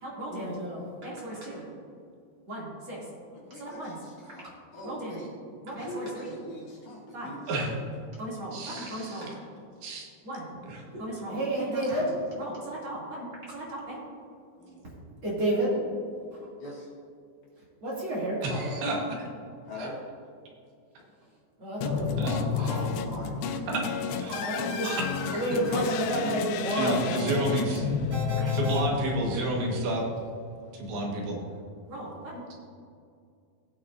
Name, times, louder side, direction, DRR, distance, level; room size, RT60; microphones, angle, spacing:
voice 1, 0.0-1.6 2.5-3.0 3.5-4.0 4.8-5.2 5.6-6.3 7.1-7.3 8.2-9.4 10.2-10.4 10.9-14.0 15.2-15.8 16.3-16.5 17.8-18.8 21.6-22.5 24.1-24.9 25.3-27.5 28.1-28.9 29.3-29.5 31.9-32.4, right 1 dB, 35° right, -6 dB, 3.0 m, -32 dB
voice 2, 3.3-4.5 4.7-5.3 5.7-7.7 14.6-14.8 16.6-16.9 19.7-20.0 22.5-23.6 25.3-26.0, equal, 55° left, -5 dB, 3.3 m, -41 dB
voice 3, 8.5-9.2 9.8-10.1 10.7-10.8 18.4-19.2 19.8-19.9 22.2-22.7 23.7-23.8 24.2-24.4 24.8-25.7 26.8-27.9 28.5-30.1 30.7-31.4, right 1 dB, 80° right, -1 dB, 3.6 m, -30 dB
sound 1, 21.8-30.0, left 7 dB, 90° left, 2.6 m, -31 dB
16.0 x 8.7 x 2.6 m, 2.3 s
omnidirectional pair, 4.5 m